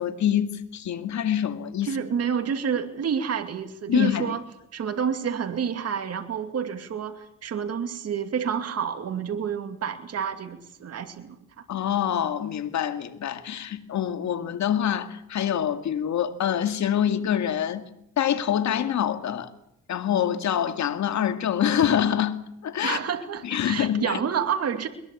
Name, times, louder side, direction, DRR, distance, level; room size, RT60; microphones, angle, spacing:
voice 1, 0.0-2.0 3.9-4.3 11.7-17.9 18.2-19.5 19.9-23.0 23.4-24.2, left 9 dB, 65° left, 2.3 m, -25 dB
voice 2, 1.9-4.4 4.7-11.6 22.8-24.9, right 7 dB, 55° right, 2.6 m, -29 dB
22.0 x 20.5 x 8.5 m
cardioid pair, 90°, 30 cm